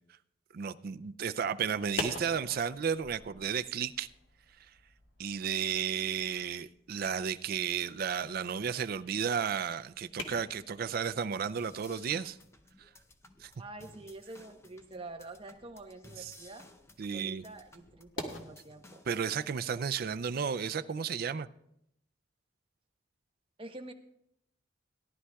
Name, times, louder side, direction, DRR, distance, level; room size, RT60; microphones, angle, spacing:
voice 1, 0.5-4.1 5.2-12.4 13.4-13.5 16.2-16.3 17.0-17.4 19.1-21.5, right 7 dB, 50° right, 12 dB, 0.4 m, -33 dB
sound 1, 1.7-18.4, left 1 dB, 85° left, 1.6 m, -47 dB
sound 2, 11.6-20.5, left 2 dB, 15° left, 0.6 m, -57 dB
voice 2, 13.6-16.7 17.1-19.0 23.6-23.9, right 2 dB, 30° right, 4 dB, 0.9 m, -47 dB
18.0 x 11.0 x 2.3 m, 0.78 s
head